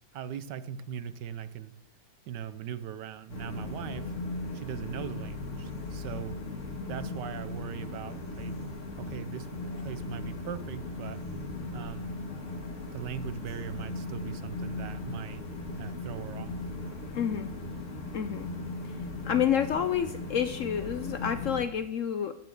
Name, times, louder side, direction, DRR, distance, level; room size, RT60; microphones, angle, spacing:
voice 1, 0.1-1.7 2.3-4.1 4.5-6.4 6.9-8.6 9.0-11.2 11.7-12.1 12.9-15.4 15.8-16.6, right 9 dB, 80° right, 13 dB, 1.4 m, -40 dB
sound 1, 3.3-21.7, left 2 dB, 45° left, 2.1 m, -38 dB
voice 2, 17.1-17.5 18.1-18.5 18.8-18.9 19.2-22.4, left 9 dB, 65° left, 10 dB, 0.8 m, -29 dB
13.5 x 6.0 x 7.7 m, 0.73 s
omnidirectional pair, 1.8 m